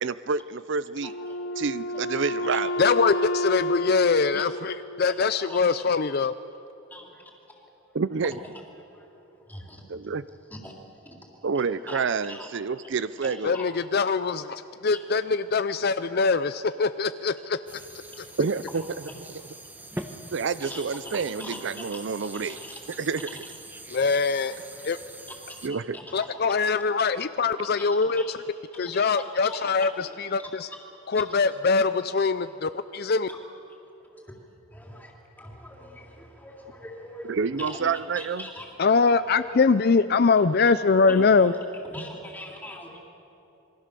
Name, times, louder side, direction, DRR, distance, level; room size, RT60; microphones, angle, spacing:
voice 1, 0.0-1.1 1.6-2.7 7.9-8.4 10.1-10.2 11.4-13.6 18.4-18.8 20.3-22.6 23.0-23.3 25.6-26.0 37.3-38.4, right 5 dB, 55° right, 15 dB, 0.5 m, -28 dB
Wind instrument woodwind instrument, 1.0-5.5, left 1 dB, 70° left, 0.9 m, -30 dB
voice 2, 1.0-1.6 4.3-4.5 5.0-5.9 6.9-7.6 8.2-8.4 8.8-9.6 10.5-10.7 11.0-11.1 11.9-12.0 12.3-12.5 12.8-12.9 13.2-13.7 14.2-15.1 16.1-16.2 18.1-18.2 20.6-22.8 23.2-23.4 24.2-24.9 25.3-27.5 27.8-28.4 28.7-29.1 29.4-31.3 32.4-32.5 33.3-33.4 33.7-34.4 34.7-39.0 39.3-39.9 41.1-41.5 41.9-43.0, left 1 dB, 10° left, -1 dB, 3.3 m, -44 dB
voice 3, 2.8-6.3 13.4-17.6 18.2-18.3 23.9-24.5 24.8-25.0 26.1-28.4 28.8-30.7 31.1-33.3 38.8-41.5, left 4 dB, 50° left, 12 dB, 0.5 m, -23 dB
sound 1, 17.7-25.7, right 1 dB, 10° right, 1.1 m, -43 dB
27.5 x 23.0 x 6.8 m, 2.9 s
head